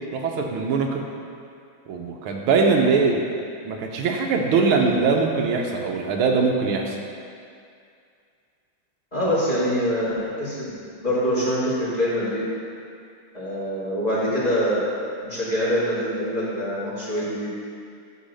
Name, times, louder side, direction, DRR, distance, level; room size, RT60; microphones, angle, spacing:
voice 1, 0.1-1.0 1.9-3.3 3.6-7.0, right 4 dB, 90° right, 2 dB, 1.7 m, -22 dB
voice 2, 9.1-12.4 13.3-14.8 15.2-17.5, equal, 20° left, -10 dB, 1.9 m, -24 dB
9.5 x 3.6 x 6.3 m, 2.4 s
omnidirectional pair, 2.3 m